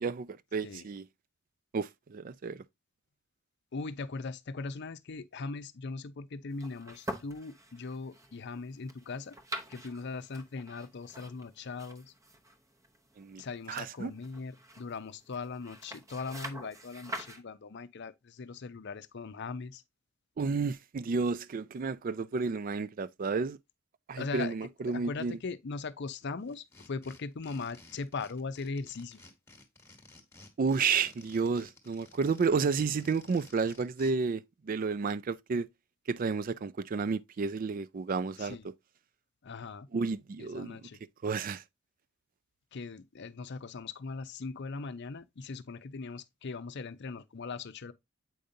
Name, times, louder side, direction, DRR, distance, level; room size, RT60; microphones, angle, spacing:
voice 1, 0.0-1.1 1.7-2.6 13.2-13.4 13.7-14.1 20.4-23.6 24.1-25.4 30.6-35.7 36.1-38.6 39.9-40.8 41.2-41.6, right 5 dB, 40° right, 0.3 m, -31 dB
voice 2, 3.7-9.4 9.7-12.1 13.4-19.8 24.2-24.5 24.9-29.2 38.4-38.7 39.4-39.9 40.4-41.0 42.7-47.9, left 4 dB, 55° left, 0.5 m, -40 dB
sound 1, 6.5-17.4, right 1 dB, 15° right, 0.7 m, -46 dB
sound 2, 26.5-34.1, left 2 dB, 15° left, 1.2 m, -55 dB
7.8 x 5.1 x 2.6 m
head